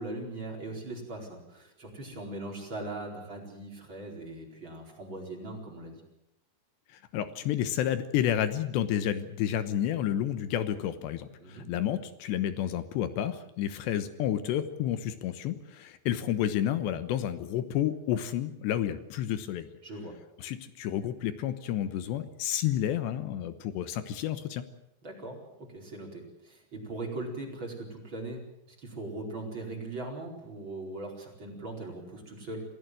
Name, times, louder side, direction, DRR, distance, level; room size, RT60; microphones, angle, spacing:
voice 1, 0.0-6.0 11.4-11.7 19.8-20.1 25.0-32.6, right 2 dB, 25° right, 0 dB, 5.0 m, -40 dB
voice 2, 6.9-19.7 20.4-24.6, left 11 dB, 80° left, 11 dB, 3.2 m, -30 dB
27.0 x 16.5 x 7.8 m, 0.85 s
omnidirectional pair, 5.1 m